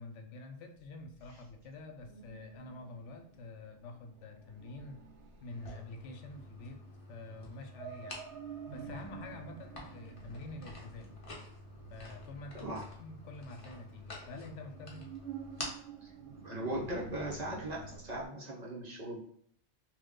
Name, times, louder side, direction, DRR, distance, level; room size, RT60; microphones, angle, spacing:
voice 1, 0.0-5.0 5.4-6.8 7.1-8.2 8.7-11.1 11.9-12.7 13.0-15.0, left 2 dB, 85° left, 5 dB, 0.9 m, -47 dB
sound 1, 0.7-18.3, right 6 dB, 75° right, 1.0 m, -51 dB
sound 2, 5.5-18.0, left 2 dB, 35° left, 0.8 m, -50 dB
voice 2, 16.4-19.2, right 1 dB, 40° right, -4 dB, 0.9 m, -38 dB
3.0 x 2.3 x 3.6 m, 0.62 s
omnidirectional pair, 1.2 m